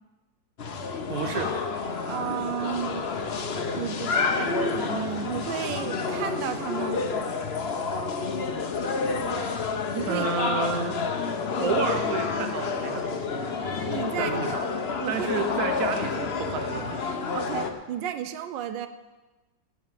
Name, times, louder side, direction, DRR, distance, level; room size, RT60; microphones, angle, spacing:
sound 1, 0.6-17.7, left 4 dB, 45° left, 0.9 m, -29 dB
voice 1, 1.1-1.5 10.1-11.0 11.6-13.2 14.2-14.6 15.1-17.0, right 6 dB, 55° right, 6 dB, 1.3 m, -30 dB
voice 2, 2.0-3.1 3.7-7.0 9.9-10.3 13.8-14.4 15.0-15.3 17.3-18.9, right 9 dB, 85° right, 10 dB, 1.3 m, -33 dB
Organ, 3.6-11.2, left 2 dB, 35° right, 3.7 m, -49 dB
17.5 x 5.9 x 7.5 m, 1.2 s
omnidirectional pair, 2.0 m